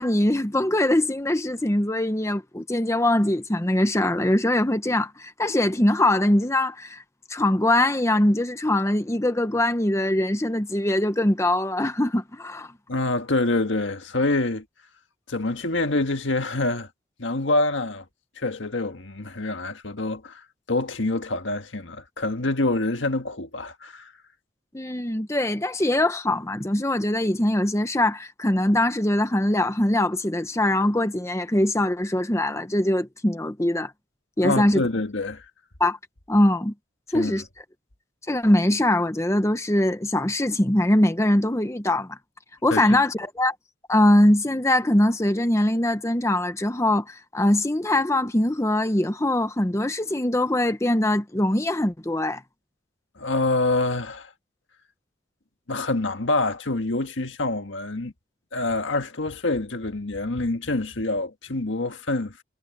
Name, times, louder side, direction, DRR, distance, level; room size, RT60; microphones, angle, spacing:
voice 1, 0.0-7.0 7.3-12.7 24.7-33.9 34.4-34.8 35.8-36.0 36.3-36.7 37.1-37.4 38.3-42.2 42.6-43.6 43.9-52.4, left 1 dB, 15° left, 0.9 m, -22 dB
voice 2, 12.9-14.6 15.3-16.9 17.2-18.0 18.4-24.1 34.4-35.4 37.1-37.4 42.7-43.0 53.2-54.3 55.7-58.1 58.5-62.4, left 2 dB, 75° left, 1.7 m, -26 dB
head